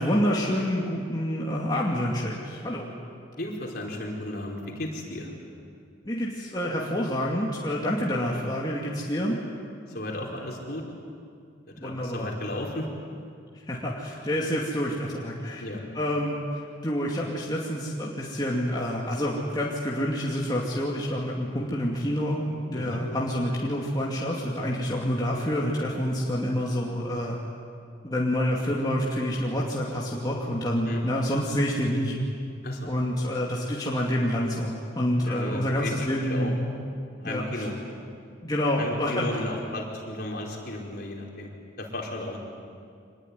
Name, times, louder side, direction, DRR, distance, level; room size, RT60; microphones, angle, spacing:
voice 1, 0.0-2.9 6.0-9.4 11.8-12.3 13.7-15.6 15.9-27.4 28.0-32.2 32.9-36.7 37.2-37.7 38.4-39.4, equal, 20° left, -4 dB, 2.5 m, -28 dB
voice 2, 3.4-5.3 9.9-10.9 11.8-12.9 15.6-15.8 22.7-23.0 30.9-31.0 32.6-32.9 35.2-36.5 37.2-37.7 38.8-41.5 41.8-42.4, left 1 dB, 55° left, -1 dB, 4.6 m, -34 dB
25.0 x 21.0 x 9.6 m, 2.4 s
head